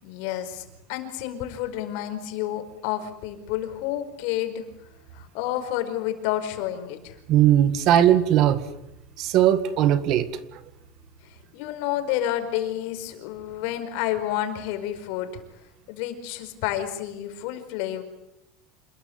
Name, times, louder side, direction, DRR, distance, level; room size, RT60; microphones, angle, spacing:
voice 1, 0.0-4.6 5.1-7.2 11.2-15.4 15.9-18.0, left 12 dB, 55° left, 8 dB, 4.9 m, -30 dB
voice 2, 7.3-8.6 9.2-10.3, right 11 dB, 40° right, 13 dB, 1.8 m, -19 dB
28.0 x 21.0 x 9.6 m, 0.85 s
cardioid pair, 175°, 0 cm